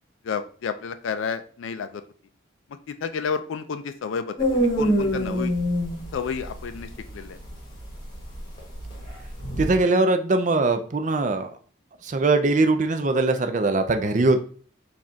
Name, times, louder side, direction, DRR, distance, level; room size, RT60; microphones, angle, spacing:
voice 1, 0.2-2.0 3.0-5.5 6.1-7.4, left 6 dB, 75° left, 10 dB, 0.4 m, -31 dB
sound 1, 4.4-9.7, equal, 20° left, 1.1 m, -25 dB
voice 2, 9.6-11.5 12.0-14.4, right 2 dB, 40° right, 7 dB, 0.4 m, -21 dB
4.1 x 2.5 x 4.5 m, 0.44 s
head